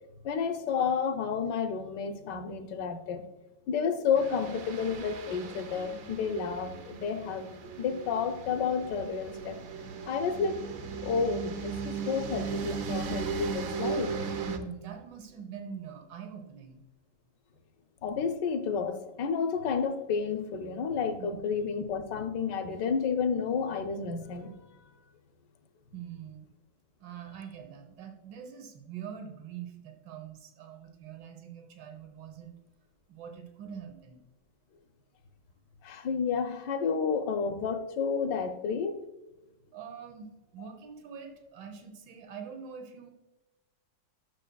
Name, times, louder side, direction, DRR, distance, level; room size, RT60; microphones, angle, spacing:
voice 1, 0.2-3.3 3.7-7.5 7.8-9.6 10.1-10.6 11.0-14.2 18.0-24.5 35.8-39.0 40.6-40.7, left 6 dB, 75° left, 8 dB, 1.4 m, -31 dB
sound 1, 4.2-14.6, right 5 dB, 60° right, 1.0 m, -37 dB
voice 2, 14.4-16.8 21.2-21.3 25.9-26.5 27.0-32.6 33.1-34.2 39.7-43.1, right 7 dB, 85° right, 5 dB, 1.6 m, -44 dB
11.5 x 6.7 x 2.2 m, 1.1 s
omnidirectional pair, 1.9 m